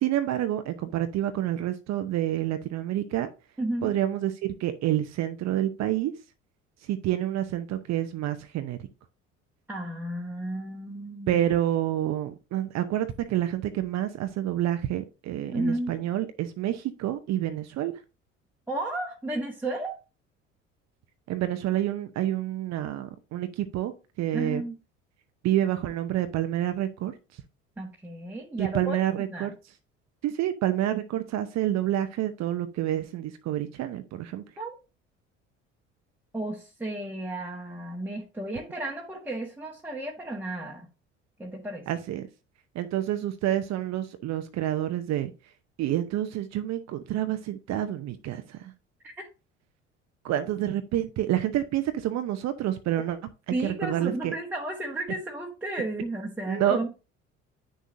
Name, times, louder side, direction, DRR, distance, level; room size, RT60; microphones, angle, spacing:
voice 1, 0.0-3.3 3.8-6.1 6.9-8.8 11.3-17.9 21.3-23.9 24.2-24.6 25.4-27.1 28.6-29.5 30.2-34.4 41.9-42.3 42.7-45.3 45.8-48.7 50.2-53.2 53.6-54.3 56.5-56.9, right 12 dB, 45° right, 0.8 m, -28 dB
voice 2, 3.6-3.9 9.7-11.4 15.5-15.9 18.7-20.0 24.3-24.8 27.8-29.0 29.3-29.5 34.6-34.7 36.3-40.9 41.4-41.9 49.0-49.3 53.5-56.9, right 1 dB, 5° right, 1.4 m, -33 dB
9.1 x 6.3 x 2.6 m
figure-of-eight pair, 60°, 37 cm